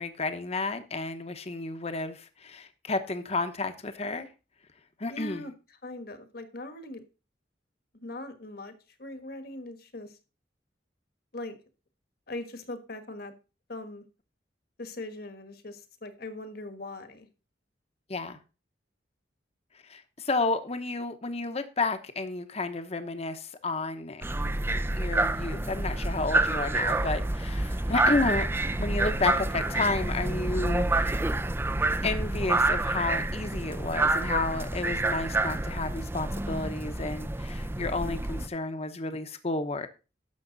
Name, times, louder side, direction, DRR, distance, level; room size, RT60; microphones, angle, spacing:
voice 1, 0.0-4.3 5.0-5.4 18.1-18.4 19.9-24.2 24.9-28.5 28.8-31.2 32.0-39.9, left 3 dB, 35° left, 1.0 m, -31 dB
voice 2, 5.1-5.5 5.8-7.0 7.9-8.7 9.0-10.2 11.3-11.5 12.3-13.3 13.7-14.0 14.8-17.3, left 2 dB, 60° left, 1.5 m, -40 dB
sound 1, 24.2-38.5, right 2 dB, 15° right, 0.4 m, -28 dB
11.5 x 6.9 x 4.0 m
head